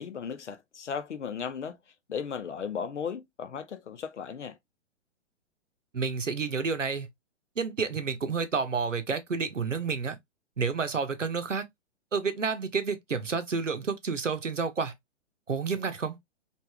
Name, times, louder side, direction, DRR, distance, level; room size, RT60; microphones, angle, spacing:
voice 1, 0.0-1.8 2.1-4.6, left 6 dB, 75° left, 0.6 m, -36 dB
voice 2, 5.9-7.1 7.6-10.2 10.6-11.6 12.1-14.9 15.5-16.2, right 5 dB, 90° right, 0.7 m, -30 dB
3.2 x 2.5 x 2.2 m
figure-of-eight pair, 120°, 36 cm